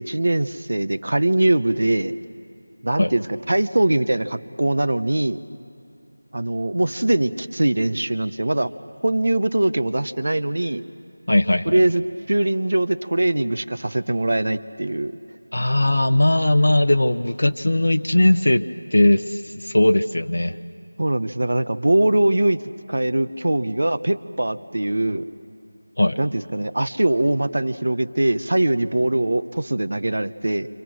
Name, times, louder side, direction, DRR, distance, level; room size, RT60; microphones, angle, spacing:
voice 1, 0.0-2.1 2.8-5.4 6.3-8.7 9.0-10.8 11.6-15.1 21.0-22.6 22.9-25.2 26.2-30.7, right 1 dB, 60° right, 12 dB, 0.8 m, -22 dB
voice 2, 11.3-11.8 15.5-18.6 18.9-20.5 26.0-26.2, left 1 dB, 80° left, 7 dB, 0.8 m, -18 dB
28.5 x 26.0 x 6.3 m, 2.7 s
figure-of-eight pair, 175°, 0 cm